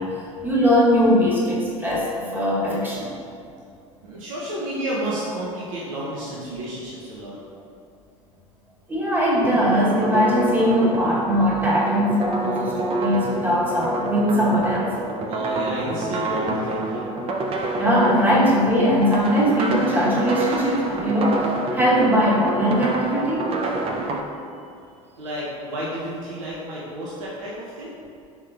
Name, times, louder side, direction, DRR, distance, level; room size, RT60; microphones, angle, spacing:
voice 1, 0.0-3.1 8.9-14.9 17.7-23.5, equal, 10° right, -6 dB, 1.0 m, -20 dB
voice 2, 4.0-7.4 15.3-17.2 25.2-28.0, right 1 dB, 75° right, -6 dB, 0.6 m, -31 dB
sound 1, 9.4-24.2, right 2 dB, 35° right, 0.4 m, -28 dB
4.4 x 3.7 x 2.3 m, 2.4 s
hypercardioid pair, 70°, 17 cm